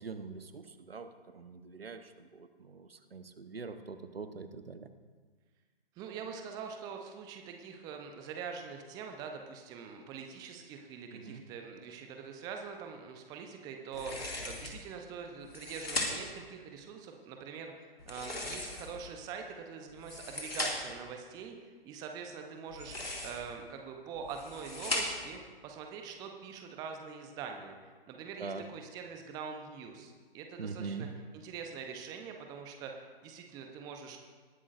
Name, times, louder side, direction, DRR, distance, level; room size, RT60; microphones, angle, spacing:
voice 1, 0.0-4.9 11.1-11.4 28.4-28.6 30.6-31.1, right 4 dB, 75° right, 9 dB, 1.1 m, -43 dB
voice 2, 6.0-31.1 31.3-34.2, right 6 dB, 15° right, 4 dB, 0.7 m, -44 dB
sound 1, 13.9-14.8 15.4-16.4 18.0-19.1 19.9-21.0 22.7-23.5 24.1-25.4, left 1 dB, 85° left, 2.4 m, -38 dB
20.0 x 11.0 x 2.6 m, 1.4 s
figure-of-eight pair, 130°, 29 cm